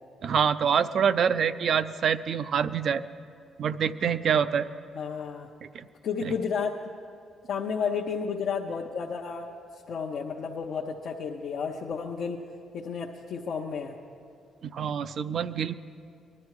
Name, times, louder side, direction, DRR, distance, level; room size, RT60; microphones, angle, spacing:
voice 1, 0.2-3.0 3.6-4.7 5.6-5.9 6.2-6.3 14.6-15.8, right 7 dB, 60° right, 13 dB, 0.5 m, -26 dB
voice 2, 4.9-5.5 6.0-6.9 7.5-9.5 9.9-12.4 12.7-14.0, left 6 dB, 65° left, -1 dB, 0.7 m, -32 dB
20.0 x 12.0 x 4.8 m, 2.5 s
cardioid pair, 90°, 0 cm